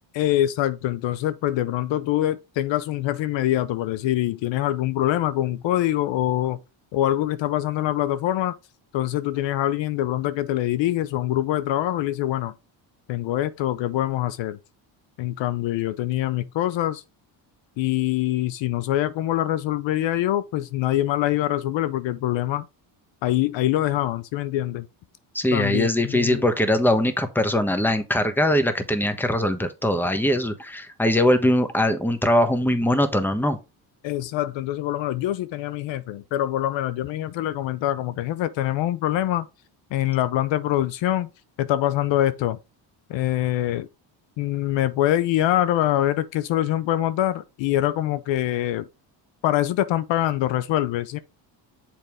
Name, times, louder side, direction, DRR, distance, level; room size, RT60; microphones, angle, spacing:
voice 1, 0.1-6.6 6.9-8.5 8.9-12.5 13.1-14.6 15.2-17.0 17.8-22.7 23.2-24.9 25.5-26.5 34.0-39.5 39.9-41.3 41.6-42.6 43.1-43.9 44.4-48.9 49.4-51.2, left 13 dB, 70° left, 0.7 m, -24 dB
voice 2, 25.3-33.6, left 1 dB, 5° left, 1.1 m, -21 dB
6.9 x 4.6 x 3.5 m
cardioid pair, 85°, 47 cm